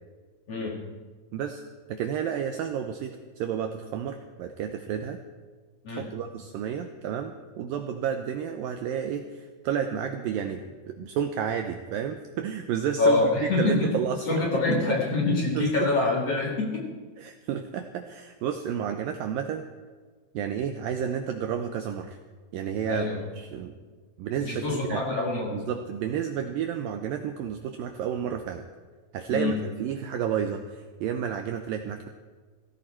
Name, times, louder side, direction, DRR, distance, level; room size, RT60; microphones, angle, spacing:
voice 1, 0.5-0.8 5.8-6.1 13.0-13.9 14.3-16.9 22.9-23.2 24.4-25.6 29.3-29.6, left 3 dB, 45° left, -1 dB, 2.2 m, -25 dB
voice 2, 1.3-1.6 1.9-5.2 5.9-13.2 13.6-14.4 14.9-15.0 15.6-15.9 17.2-19.7 20.3-22.2 22.5-23.1 23.4-23.7 24.2-25.0 25.5-28.6 29.1-29.5 29.8-32.1, right 8 dB, 80° right, 6 dB, 2.1 m, -31 dB
17.5 x 15.5 x 4.4 m, 1.4 s
omnidirectional pair, 4.8 m